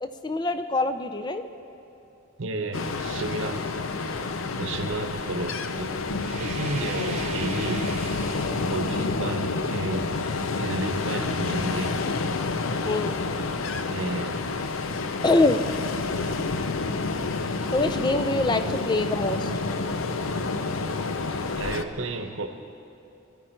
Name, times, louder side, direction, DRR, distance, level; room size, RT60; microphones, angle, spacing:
voice 1, 0.0-1.4 6.8-7.1 12.8-13.2 15.2-15.6 17.7-19.5, left 2 dB, 20° left, 9 dB, 0.5 m, -25 dB
voice 2, 2.4-3.8 4.6-6.0 6.4-7.9 8.7-10.1 10.6-12.0 13.9-14.4 14.7-15.2 21.3-22.5, right 2 dB, 75° right, 7 dB, 1.0 m, -32 dB
Ocean, 2.7-21.8, left 3 dB, 85° left, 0.7 m, -29 dB
sound 1, 6.2-8.9, right 5 dB, 30° right, 1.0 m, -39 dB
21.0 x 12.0 x 4.5 m, 2.8 s
head